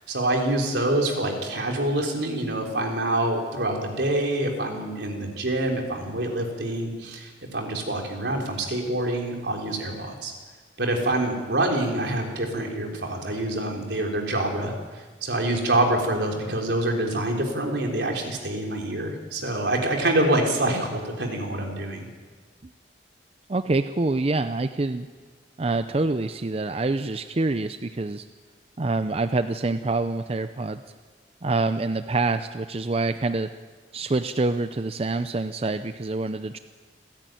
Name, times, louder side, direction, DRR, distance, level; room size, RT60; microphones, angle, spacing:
voice 1, 0.0-10.3 10.8-14.7 15.2-22.1, right 1 dB, 80° right, 1 dB, 3.8 m, -26 dB
voice 2, 23.5-25.1 25.6-28.2 28.8-30.8 31.4-33.5 33.9-36.6, right 3 dB, 35° right, 10 dB, 0.5 m, -26 dB
28.5 x 10.5 x 9.2 m, 1.5 s
head